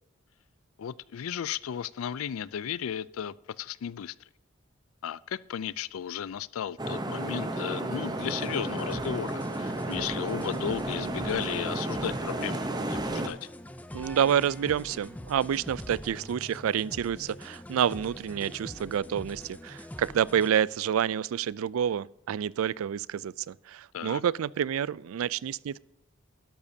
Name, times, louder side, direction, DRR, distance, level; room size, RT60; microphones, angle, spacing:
voice 1, 0.8-4.1 5.0-13.5 23.9-24.2, left 8 dB, 90° left, 0.4 m, -35 dB
sound 1, 6.8-13.3, right 1 dB, 20° right, 0.8 m, -32 dB
sound 2, 8.2-20.5, left 1 dB, 5° left, 0.5 m, -44 dB
voice 2, 13.9-25.8, right 9 dB, 90° right, 0.3 m, -28 dB
12.0 x 12.0 x 2.7 m
head